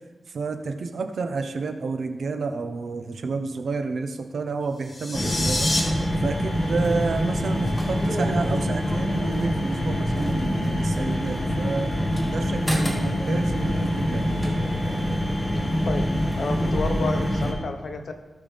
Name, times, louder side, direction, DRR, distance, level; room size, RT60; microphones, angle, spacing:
voice 1, 0.3-5.7 6.2-14.5, right 4 dB, 75° right, 6 dB, 0.9 m, -30 dB
sound 1, 4.8-5.8, left 2 dB, 30° left, 2.0 m, -27 dB
sound 2, 5.1-17.5, equal, 15° left, 2.2 m, -25 dB
voice 2, 16.4-18.1, left 3 dB, 65° left, 5 dB, 1.2 m, -30 dB
17.5 x 5.9 x 3.5 m, 1.2 s
wide cardioid pair, 85°, 0 cm